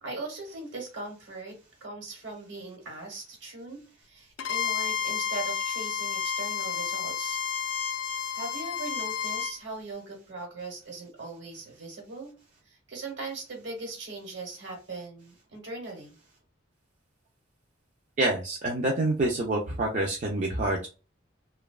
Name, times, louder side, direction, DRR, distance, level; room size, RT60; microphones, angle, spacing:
voice 1, 0.0-7.4 8.3-12.3 12.7-16.1, right 3 dB, 70° right, 1 dB, 1.1 m, -40 dB
Bowed string instrument, 4.4-9.6, left 8 dB, 70° left, 0.3 m, -31 dB
voice 2, 18.2-20.9, right 2 dB, 40° right, -1 dB, 0.4 m, -27 dB
2.7 x 2.2 x 2.3 m, 0.32 s
head